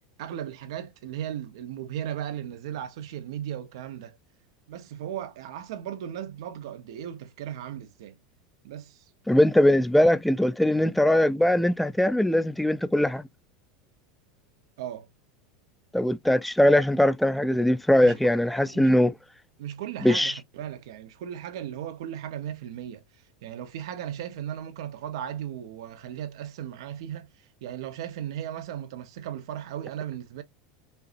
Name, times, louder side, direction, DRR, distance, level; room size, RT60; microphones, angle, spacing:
voice 1, 0.2-4.2 4.7-8.2 8.6-9.0 14.8-15.1 18.0-18.3 18.6-18.9 19.6-23.0 23.4-30.4, right 10 dB, 75° right, 1.0 m, -36 dB
voice 2, 9.3-13.2 15.9-19.1 20.0-20.3, left 1 dB, 5° left, 0.5 m, -21 dB
5.5 x 2.8 x 2.6 m
supercardioid pair, 110°, 3 cm